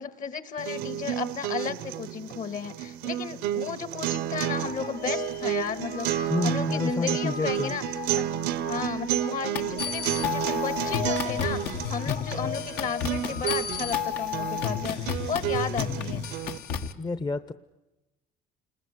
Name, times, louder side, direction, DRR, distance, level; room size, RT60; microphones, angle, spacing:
voice 1, 0.0-7.8 8.1-8.3 8.7-16.2, left 6 dB, 50° left, 14 dB, 1.9 m, -34 dB
sound 1, 0.6-16.6, right 12 dB, 85° right, 0.9 m, -31 dB
sound 2, 4.5-14.5, left 8 dB, 90° left, 4.3 m, -39 dB
voice 2, 6.3-7.7 12.1-12.2 17.0-17.5, left 3 dB, 25° left, 12 dB, 0.8 m, -29 dB
sound 3, 9.6-16.9, left 8 dB, 75° left, 1.7 m, -32 dB
29.0 x 20.5 x 9.8 m, 1.0 s
cardioid pair, 110°, 17 cm